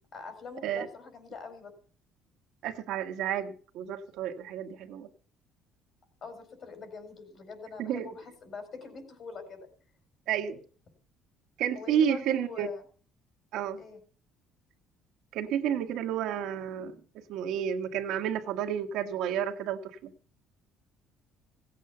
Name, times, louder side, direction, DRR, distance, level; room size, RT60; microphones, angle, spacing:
voice 1, 0.1-1.7 6.2-9.7 11.7-12.8 13.8-14.0, left 4 dB, 40° left, 7 dB, 4.6 m, -43 dB
voice 2, 2.6-5.1 7.8-8.1 10.3-10.6 11.6-12.7 13.5-13.8 15.3-17.0 17.3-20.1, right 9 dB, 65° right, 4 dB, 1.6 m, -31 dB
17.0 x 8.4 x 6.9 m, 0.43 s
cardioid pair, 160°, 0 cm